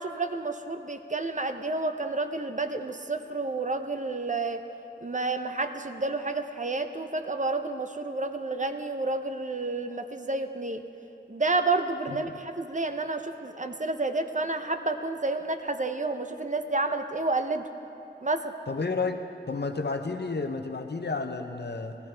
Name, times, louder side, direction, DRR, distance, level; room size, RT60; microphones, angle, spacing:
voice 1, 0.0-4.6 5.0-10.8 11.3-17.6 18.2-18.5, right 3 dB, 45° right, 8 dB, 0.6 m, -30 dB
voice 2, 12.1-12.4 18.7-19.2 19.5-22.0, left 3 dB, 65° left, 7 dB, 0.7 m, -31 dB
15.5 x 15.5 x 3.4 m, 2.9 s
wide cardioid pair, 50°, 18 cm